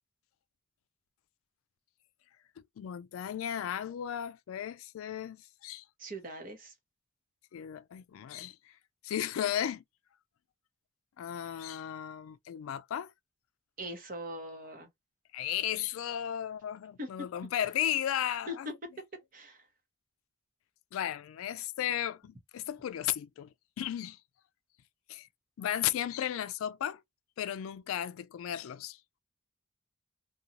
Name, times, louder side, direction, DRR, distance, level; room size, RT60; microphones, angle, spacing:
voice 1, 2.8-5.8 7.5-8.6 9.0-9.8 11.2-13.1 15.3-18.7 20.9-23.5 23.8-24.2 25.1-25.3 25.6-27.0 27.4-29.0, left 10 dB, 85° left, 0.3 m, -35 dB
voice 2, 6.0-6.7 13.8-14.9 17.0-17.3 18.5-18.6 19.3-19.7, equal, 40° right, 0.8 m, -41 dB
2.5 x 2.3 x 2.8 m
head